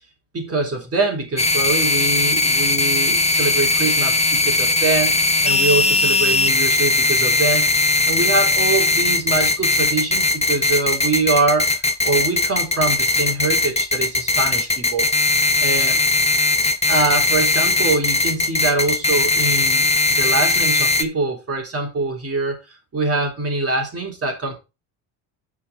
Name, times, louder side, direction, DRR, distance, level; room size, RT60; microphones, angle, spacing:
voice 1, 0.3-7.7 8.1-15.1 15.6-16.0 16.9-24.6, right 3 dB, 30° right, 2 dB, 3.5 m, -24 dB
sound 1, 1.4-21.0, left 2 dB, 15° left, 1.0 m, -19 dB
12.5 x 5.1 x 3.6 m, 0.27 s
supercardioid pair, 95°, 47 cm